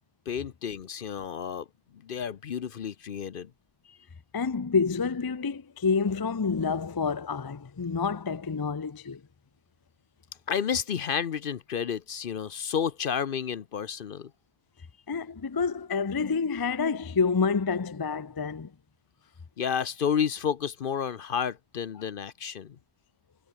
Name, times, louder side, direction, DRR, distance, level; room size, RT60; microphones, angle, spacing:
voice 1, 0.3-1.7 2.0-3.5 3.9-4.0 10.5-14.3 19.6-22.8, left 7 dB, 55° left, 0.8 m, -31 dB
voice 2, 4.3-9.2 15.1-18.7, left 5 dB, 30° left, 0.4 m, -28 dB
omnidirectional pair, 1.2 m